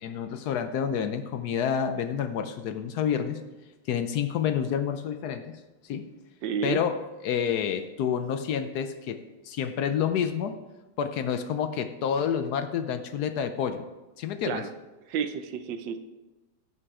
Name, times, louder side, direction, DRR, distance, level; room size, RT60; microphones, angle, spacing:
voice 1, 0.0-3.4 3.9-6.1 6.6-7.0 7.2-10.6 11.0-13.8 14.2-14.6, left 8 dB, 75° left, 9 dB, 0.9 m, -29 dB
voice 2, 6.4-6.8 14.4-14.7 15.1-16.0, right 7 dB, 70° right, 9 dB, 1.2 m, -30 dB
16.0 x 5.5 x 4.8 m, 1.1 s
omnidirectional pair, 2.4 m